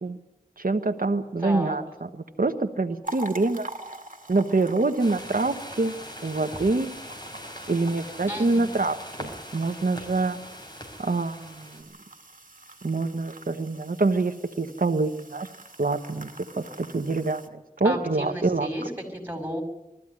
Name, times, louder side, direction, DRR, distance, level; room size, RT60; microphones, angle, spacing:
voice 1, 0.6-3.7 4.3-6.0 6.2-6.9 7.7-10.4 11.0-11.9 12.8-15.5 15.8-16.3 16.6-18.7, right 3 dB, 85° right, 6 dB, 1.1 m, -26 dB
voice 2, 1.4-1.8 8.3-8.6 17.8-19.6, equal, 15° right, 4 dB, 5.9 m, -32 dB
sound 1, 3.0-17.5, right 2 dB, 70° right, 2.1 m, -45 dB
sound 2, 5.0-11.8, equal, 30° left, 5.5 m, -41 dB
21.5 x 14.5 x 9.8 m, 0.97 s
wide cardioid pair, 40°, 14 cm